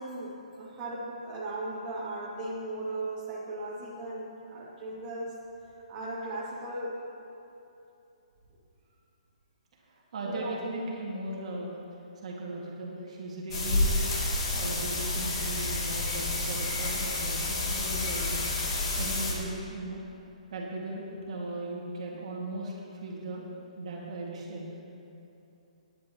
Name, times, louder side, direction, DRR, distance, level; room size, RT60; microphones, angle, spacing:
voice 1, 0.0-5.4 5.9-7.0 10.2-10.6, right 2 dB, 20° right, -8 dB, 2.4 m, -37 dB
voice 2, 9.9-11.7 12.2-14.0 14.5-18.5 19.0-20.0 20.5-22.7 23.0-23.4 23.8-24.7, right 2 dB, 55° right, -3 dB, 2.2 m, -37 dB
sound 1, 13.5-19.3, left 2 dB, 45° left, 2.8 m, -29 dB
18.5 x 10.0 x 3.1 m, 2.8 s
hypercardioid pair, 165°, 4 cm